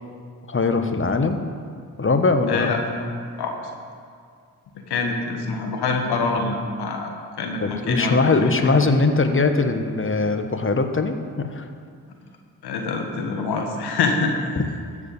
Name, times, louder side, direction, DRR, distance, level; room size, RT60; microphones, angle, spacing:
voice 1, 0.5-1.4 2.0-2.7 7.6-11.6, left 3 dB, 30° left, 7 dB, 1.3 m, -21 dB
voice 2, 2.5-2.8 3.4-3.5 4.7-8.7 12.6-14.3, left 4 dB, 80° left, 2 dB, 1.6 m, -25 dB
14.5 x 5.0 x 8.4 m, 2.2 s
supercardioid pair, 45°, 39 cm